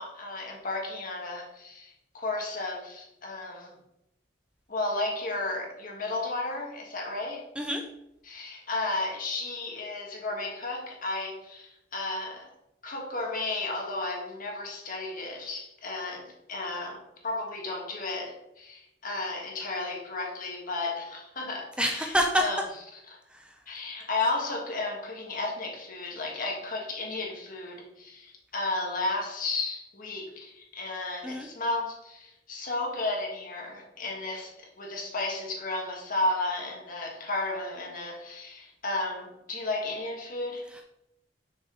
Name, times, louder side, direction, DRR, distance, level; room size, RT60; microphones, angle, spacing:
voice 1, 0.0-3.7 4.7-7.5 8.2-12.5 12.8-22.6 23.1-23.2 23.7-40.7, left 2 dB, 50° left, 0 dB, 1.5 m, -33 dB
voice 2, 21.8-22.4 23.3-23.6 31.2-31.5 40.7-40.8, equal, 5° right, 2 dB, 0.5 m, -27 dB
6.3 x 5.1 x 3.8 m, 0.84 s
head